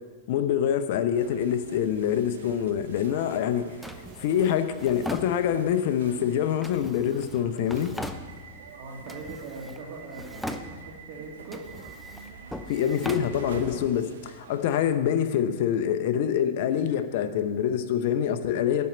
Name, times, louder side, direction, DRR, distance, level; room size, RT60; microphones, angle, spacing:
voice 1, 0.3-3.7 4.2-7.9 12.7-18.9, left 9 dB, 60° left, 11 dB, 0.7 m, -25 dB
sound 1, 1.1-14.8, right 5 dB, 80° right, 1.1 m, -46 dB
Drawer open or close, 3.8-5.9 6.6-8.7 9.1-9.8 10.1-11.1 11.4-13.9, equal, ahead, 0.6 m, -39 dB
voice 2, 8.8-11.7, right 3 dB, 50° right, -1 dB, 2.6 m, -41 dB
11.0 x 4.5 x 7.7 m, 1.5 s
hypercardioid pair, 115°, 0 cm